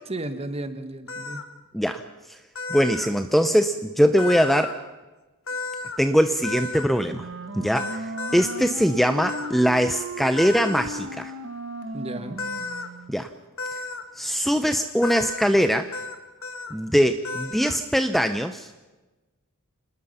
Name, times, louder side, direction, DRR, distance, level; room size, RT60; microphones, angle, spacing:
voice 1, 0.0-1.4 11.9-12.4, right 1 dB, 30° right, 9 dB, 1.6 m, -33 dB
sound 1, 1.1-1.4 2.5-3.1 4.2-4.7 5.5-6.0 6.4-6.9 7.7-8.5 9.3-9.5 10.4-10.8 12.4-12.9 13.6-14.0 15.0-15.5 15.9-16.1 16.4-16.7 17.2-17.8, left 3 dB, 65° left, 1.8 m, -33 dB
voice 2, 2.7-4.8 6.0-7.3 7.5-11.3 13.1-13.3 14.2-15.9 16.7-18.7, equal, ahead, 8 dB, 0.7 m, -22 dB
Wind instrument woodwind instrument, 7.0-13.2, right 2 dB, 55° right, 1.6 m, -36 dB
27.0 x 20.0 x 5.7 m, 1.2 s
head